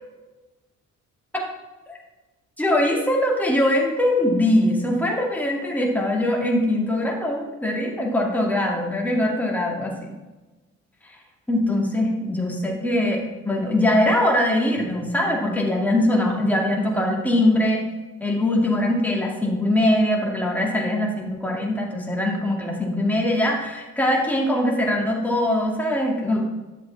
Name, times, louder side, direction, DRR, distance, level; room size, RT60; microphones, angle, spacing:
voice 1, 2.6-10.1 11.0-11.1 11.5-17.8 18.2-26.4, left 1 dB, 5° left, -2 dB, 2.5 m, -22 dB
11.5 x 7.3 x 3.5 m, 1.2 s
cardioid pair, 90°, 30 cm